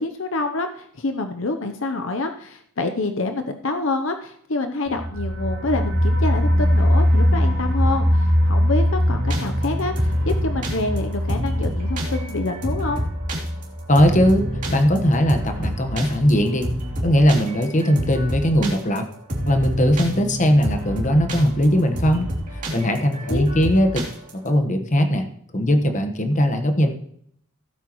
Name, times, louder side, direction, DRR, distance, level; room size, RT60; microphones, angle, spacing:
voice 1, 0.0-13.0 23.3-23.5, left 2 dB, 60° left, 7 dB, 0.8 m, -27 dB
sound 1, 4.9-15.6 15.9-16.0 16.3-16.4, equal, 85° right, 2.8 m, -22 dB
sound 2, 9.1-24.5, equal, 35° right, 3.0 m, -29 dB
voice 2, 13.9-16.7 17.0-19.1 19.5-24.0 24.3-25.2 25.5-26.9, equal, 35° left, 6 dB, 1.3 m, -19 dB
16.5 x 9.2 x 3.1 m, 0.67 s
head